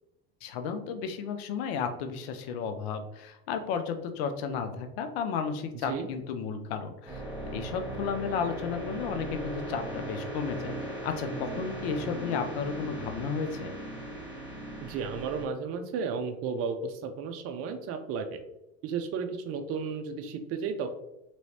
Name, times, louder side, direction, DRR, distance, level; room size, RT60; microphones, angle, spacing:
voice 1, 0.4-7.2 7.5-13.7, left 6 dB, 75° left, 7 dB, 0.6 m, -33 dB
sound 1, 7.1-15.5, right 1 dB, 5° right, 1.3 m, -38 dB
voice 2, 14.8-18.4 18.8-20.9, right 5 dB, 50° right, 6 dB, 0.5 m, -33 dB
3.1 x 3.0 x 2.8 m, 0.88 s
supercardioid pair, 95°, 31 cm